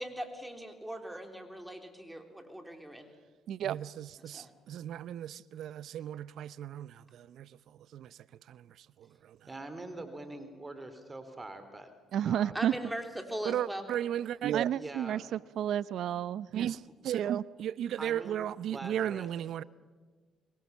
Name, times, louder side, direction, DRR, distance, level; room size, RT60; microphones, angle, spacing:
voice 1, 0.0-3.1 4.3-4.5 12.5-13.8, right 1 dB, 5° right, 3.7 m, -40 dB
voice 2, 3.5-7.6 7.9-8.2 8.5-9.4 12.1-12.8 13.4-19.6, right 10 dB, 70° right, 0.6 m, -34 dB
voice 3, 9.5-11.9 12.2-12.7 14.7-15.2 18.0-19.3, right 2 dB, 25° right, 3.5 m, -44 dB
25.0 x 22.0 x 7.2 m
supercardioid pair, 65°, 0 cm